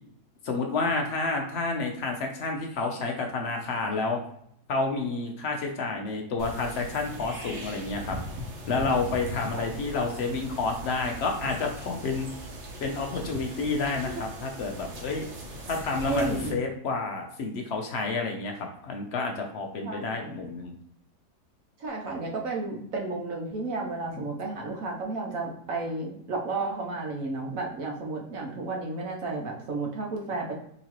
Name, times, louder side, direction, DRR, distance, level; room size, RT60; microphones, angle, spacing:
voice 1, 0.4-4.2 4.7-8.2 8.7-12.3 12.8-15.3 15.7-20.7 24.1-24.3, left 3 dB, 65° left, 2 dB, 0.6 m, -30 dB
sound 1, 6.4-16.5, equal, 85° right, 1.5 m, -39 dB
voice 2, 16.1-16.6 19.8-20.3 21.8-30.5, right 3 dB, 65° right, -1 dB, 1.1 m, -32 dB
3.9 x 3.1 x 2.9 m, 0.69 s
omnidirectional pair, 1.7 m